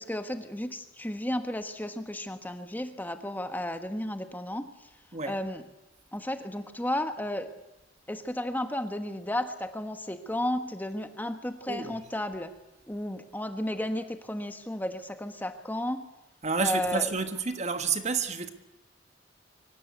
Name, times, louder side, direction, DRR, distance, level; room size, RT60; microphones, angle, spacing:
voice 1, 0.0-4.6 5.2-5.6 6.1-7.5 8.1-12.5 12.9-16.0 16.6-17.1, left 1 dB, 10° left, 1.3 m, -33 dB
voice 2, 11.7-12.0 16.4-18.5, right 5 dB, 35° right, 1.5 m, -30 dB
24.0 x 18.0 x 8.3 m
head